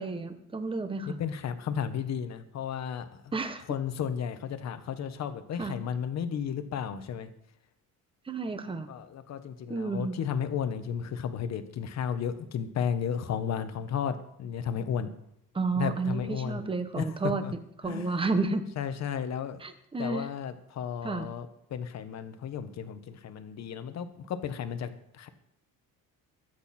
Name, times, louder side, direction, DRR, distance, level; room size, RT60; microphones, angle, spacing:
voice 1, 0.0-1.2 3.3-3.6 5.6-5.7 8.3-8.9 9.7-10.2 15.5-17.4 17.8-18.6 19.6-20.3 21.0-21.3, right 3 dB, 15° right, 9 dB, 1.0 m, -31 dB
voice 2, 1.1-3.1 3.7-7.3 8.9-15.1 15.8-16.7 16.9-17.1 17.4-17.5 17.9-18.2 18.8-19.6 20.0-25.3, left 8 dB, 50° left, 10 dB, 1.2 m, -33 dB
22.0 x 8.1 x 4.4 m, 0.78 s
cardioid pair, 170°, 35 cm